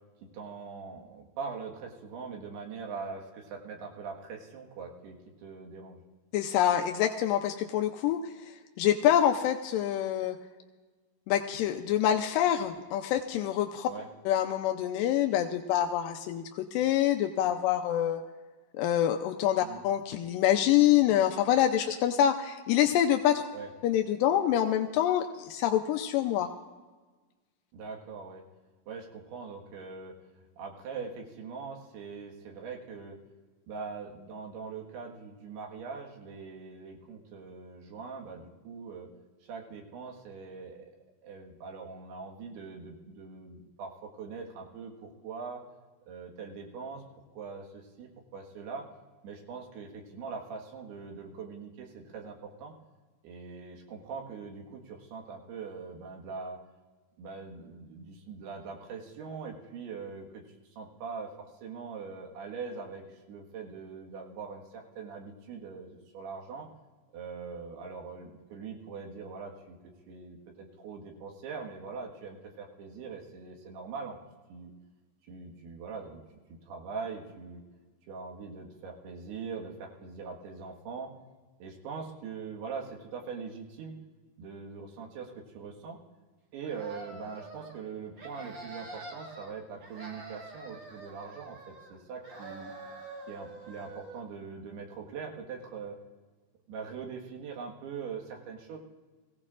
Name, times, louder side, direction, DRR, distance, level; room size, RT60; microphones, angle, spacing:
voice 1, 0.3-6.0 13.9-14.1 19.6-19.8 23.5-23.7 27.7-28.5 28.9-33.2 33.7-39.1 39.4-40.9 41.2-45.6 46.1-47.0 47.4-48.9 49.2-52.7 53.2-56.6 57.2-66.7 67.1-69.8 70.1-74.2 74.5-74.7 75.3-76.2 76.7-77.6 78.1-81.1 81.6-83.9 84.4-86.0 86.5-92.7 93.3-96.0 96.7-98.8, right 5 dB, 80° right, 1 dB, 3.5 m, -42 dB
voice 2, 6.3-8.3 8.8-10.4 11.3-13.9 14.3-18.2 18.7-23.5 23.8-26.5, left 11 dB, 85° left, 5 dB, 2.0 m, -26 dB
sound 1, 86.6-87.8 88.1-89.5 89.8-92.0 92.2-94.2, right 2 dB, 55° right, 1.3 m, -46 dB
21.5 x 16.0 x 2.5 m, 1.3 s
omnidirectional pair, 4.6 m